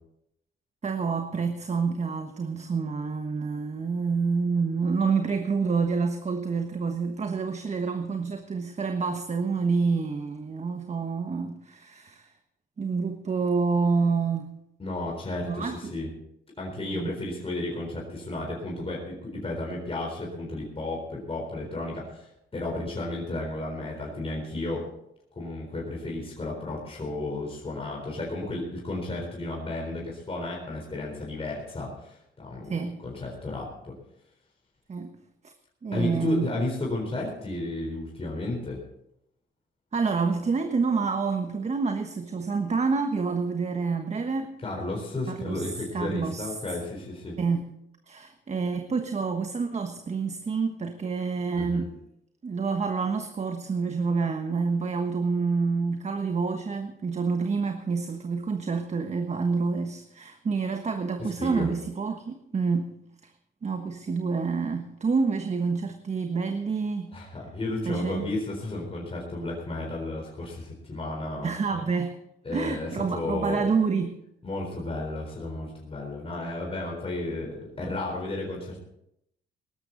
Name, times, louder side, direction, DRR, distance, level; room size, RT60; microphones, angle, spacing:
voice 1, 0.8-12.3 12.8-14.5 15.5-15.9 16.9-17.1 32.7-33.0 34.9-35.1 35.4-35.5 35.8-36.5 39.9-44.5 45.3-45.6 45.9-46.5 47.4-47.6 48.1-51.9 52.4-62.9 63.6-67.1 67.8-68.3 71.4-72.1 72.5-74.1, right 4 dB, 35° right, 6 dB, 1.3 m, -28 dB
voice 2, 14.8-16.1 16.6-24.8 25.3-32.8 33.0-33.9 35.9-38.8 44.6-47.4 51.5-51.9 61.2-61.7 67.1-71.5 72.4-73.7 74.4-78.8, left 2 dB, 30° left, -1 dB, 4.1 m, -33 dB
18.0 x 13.5 x 4.0 m, 0.78 s
cardioid pair, 90°, 20 cm